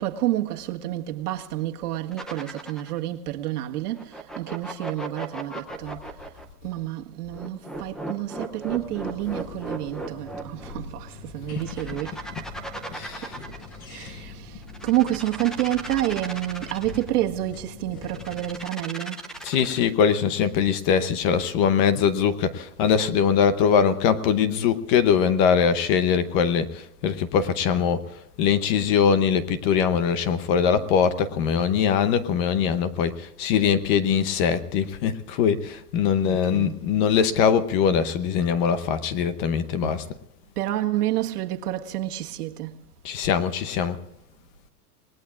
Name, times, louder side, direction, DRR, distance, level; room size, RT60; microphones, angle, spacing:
voice 1, 0.0-6.1 6.6-12.2 13.2-13.3 13.9-19.3 36.2-36.8 39.8-40.1 40.5-42.8, right 14 dB, 65° right, 1.7 m, -29 dB
sound 1, 2.1-3.0 4.0-6.4 7.3-10.7 11.5-13.8 14.6-17.1 18.0-19.9, right 2 dB, ahead, 0.5 m, -36 dB
sound 2, 8.6-18.6, left 4 dB, 60° left, 7.2 m, -43 dB
voice 2, 12.9-13.3 14.0-14.2 19.4-28.1 28.4-40.1 43.0-44.0, left 7 dB, 30° left, 0.8 m, -22 dB
28.0 x 19.5 x 2.5 m
supercardioid pair, 155°, 48 cm